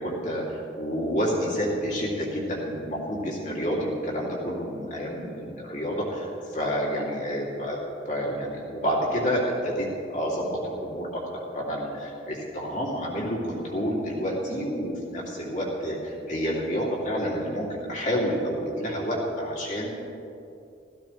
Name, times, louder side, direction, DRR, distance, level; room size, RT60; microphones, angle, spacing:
voice 1, 0.0-7.8 8.1-19.9, equal, 45° left, -4 dB, 2.9 m, -29 dB
16.5 x 15.0 x 3.4 m, 2.7 s
head